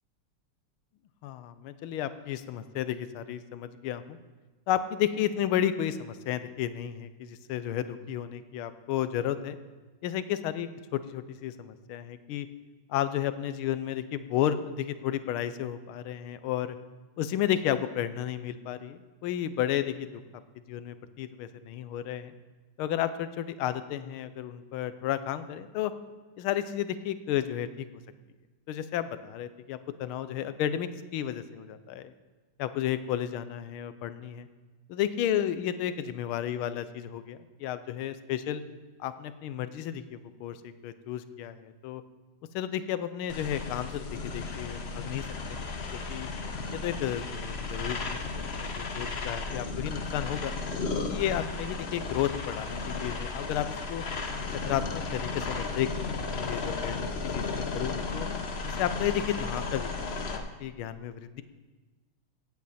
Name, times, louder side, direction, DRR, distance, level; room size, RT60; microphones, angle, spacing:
voice 1, 1.2-4.2 4.7-9.6 10.0-12.5 12.9-16.8 17.2-20.2 20.7-22.3 22.8-25.9 26.4-27.9 28.7-32.1 32.6-34.5 34.9-38.6 39.0-40.6 40.8-42.0 42.5-45.6 46.1-46.3 46.7-48.5 48.8-50.5 51.1-54.0 54.7-58.3 58.8-61.4, left 11 dB, 80° left, 12 dB, 1.5 m, -32 dB
sound 1, 43.3-60.4, left 4 dB, 65° left, 0.6 m, -34 dB
16.5 x 8.6 x 4.2 m, 1.3 s
omnidirectional pair, 2.4 m